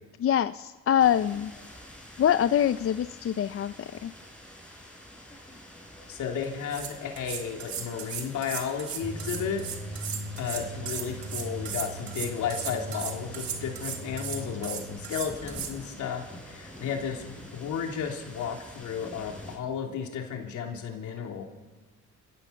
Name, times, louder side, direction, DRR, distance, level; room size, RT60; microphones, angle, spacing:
voice 1, 0.2-1.5 2.2-4.1, left 10 dB, 50° left, 12 dB, 0.6 m, -25 dB
sound 1, 1.0-19.6, equal, 5° left, 6.0 m, -47 dB
voice 2, 6.1-9.6 10.0-10.1 10.4-21.4, left 7 dB, 75° left, 2 dB, 3.4 m, -33 dB
sound 2, 6.4-6.5 6.7-15.7, right 8 dB, 70° right, 2.3 m, -36 dB
sound 3, 9.0-14.8, equal, 20° right, 4.3 m, -40 dB
29.5 x 16.5 x 7.0 m, 1.4 s
cardioid pair, 90°, 30 cm